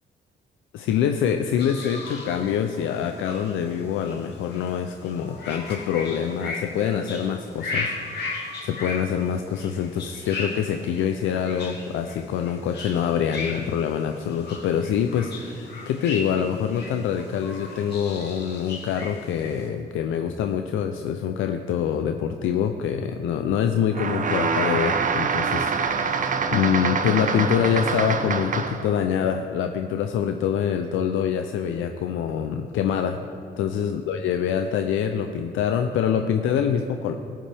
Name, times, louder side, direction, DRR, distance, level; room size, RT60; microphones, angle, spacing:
voice 1, 0.7-33.2 33.6-37.1, left 8 dB, 80° left, 6 dB, 0.5 m, -25 dB
sound 1, 1.6-19.7, left 3 dB, 60° left, 2.5 m, -37 dB
sound 2, 23.9-28.9, right 5 dB, 40° right, 0.7 m, -25 dB
14.0 x 9.0 x 3.5 m, 2.5 s
cardioid pair, 90°, 20 cm